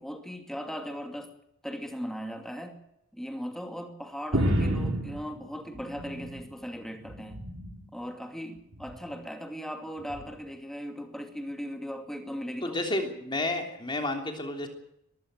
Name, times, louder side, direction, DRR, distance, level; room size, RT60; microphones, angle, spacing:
voice 1, 0.0-1.3 1.6-2.8 3.1-7.4 7.9-12.8, equal, ahead, 5 dB, 2.5 m, -38 dB
sound 1, 4.3-6.6 6.9-7.9 8.7-9.1 10.1-10.3, right 1 dB, 90° right, 4.3 m, -30 dB
voice 2, 12.6-14.7, left 2 dB, 25° left, 4 dB, 3.3 m, -31 dB
22.0 x 15.5 x 7.8 m, 0.77 s
head